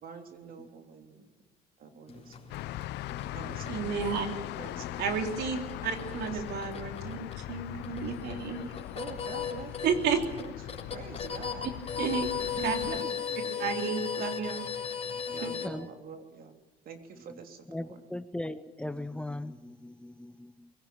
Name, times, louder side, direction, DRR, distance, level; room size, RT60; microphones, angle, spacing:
voice 1, 0.0-1.3 1.8-2.5 3.3-3.8 4.6-5.0 6.1-6.4 8.9-11.7 12.5-13.7 15.3-18.0, right 6 dB, 60° right, 5 dB, 3.4 m, -46 dB
sound 1, 2.1-15.7, left 7 dB, 35° left, 4.0 m, -38 dB
sound 2, 2.5-13.0, left 16 dB, 85° left, 0.7 m, -40 dB
voice 2, 3.1-3.7 4.8-5.0 5.8-5.9 15.3-15.9 17.7-20.7, left 1 dB, 5° left, 12 dB, 0.8 m, -40 dB
voice 3, 3.7-4.3 5.0-8.8 9.8-10.2 12.0-12.3 12.6-12.8 13.6-14.7 15.4-15.5, right 6 dB, 75° right, 5 dB, 3.2 m, -32 dB
23.0 x 17.0 x 8.9 m, 1.1 s
cardioid pair, 110°, 17 cm